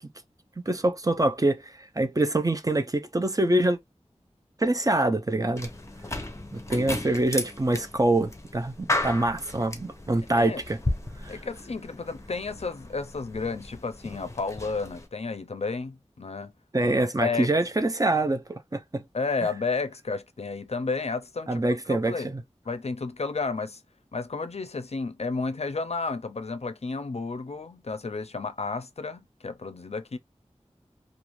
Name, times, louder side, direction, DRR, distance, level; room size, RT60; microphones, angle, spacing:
voice 1, 0.7-3.8 4.6-5.7 6.5-10.8 11.2-11.3 16.7-19.0 21.5-22.4, right 2 dB, 30° right, 0.5 m, -25 dB
sound 1, 5.6-15.1, left 1 dB, 25° left, 0.6 m, -35 dB
voice 2, 11.3-16.5 16.8-16.9 17.2-17.5 19.1-21.6 21.9-22.3 22.7-23.8 24.1-30.2, left 4 dB, 65° left, 0.4 m, -32 dB
2.5 x 2.4 x 2.9 m
wide cardioid pair, 55°, 12 cm